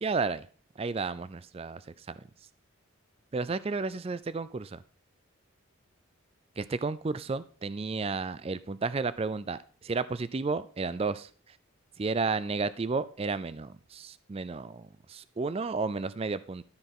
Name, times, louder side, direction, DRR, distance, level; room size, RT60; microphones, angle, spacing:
voice 1, 0.0-0.5 0.8-2.3 3.3-4.8 6.6-11.6 12.0-16.6, right 4 dB, 30° right, 16 dB, 0.4 m, -32 dB
13.0 x 4.6 x 6.0 m, 0.42 s
head